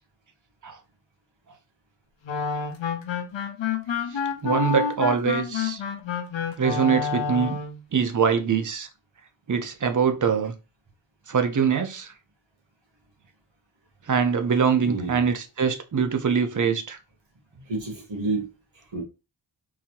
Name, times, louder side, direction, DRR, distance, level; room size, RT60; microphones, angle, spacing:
sound 1, 2.2-7.8, left 6 dB, 70° left, 0.7 m, -28 dB
voice 1, 4.1-5.8 6.6-7.6 7.9-8.9 9.5-10.5 11.3-12.1 14.1-17.0, right 6 dB, 40° right, 0.7 m, -23 dB
voice 2, 14.8-15.2 17.6-19.0, right 2 dB, 70° right, 1.8 m, -31 dB
3.9 x 2.7 x 2.8 m
wide cardioid pair, 100°, 47 cm